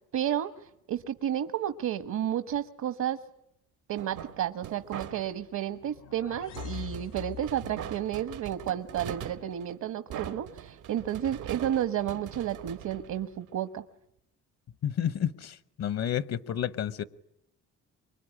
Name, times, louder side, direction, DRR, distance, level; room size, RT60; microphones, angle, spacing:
voice 1, 0.1-3.2 3.9-13.8, right 10 dB, 65° right, 1.2 m, -32 dB
sound 1, 4.0-5.5 6.6-13.7, right 10 dB, 90° right, 1.7 m, -42 dB
sound 2, 5.6-7.9, left 11 dB, 80° left, 2.2 m, -43 dB
voice 2, 14.8-17.0, left 9 dB, 55° left, 0.9 m, -30 dB
25.0 x 22.0 x 10.0 m
cardioid pair, 90°, 30 cm